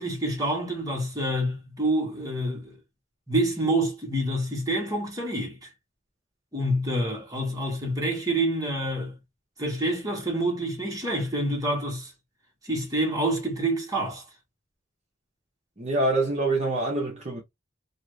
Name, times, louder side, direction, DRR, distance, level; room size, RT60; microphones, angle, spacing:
voice 1, 0.0-2.8 3.3-5.7 6.5-9.1 9.6-12.1 12.6-14.2, right 1 dB, 20° right, 1.1 m, -27 dB
voice 2, 15.8-17.4, right 2 dB, 35° right, 0.7 m, -25 dB
2.6 x 2.4 x 3.1 m
head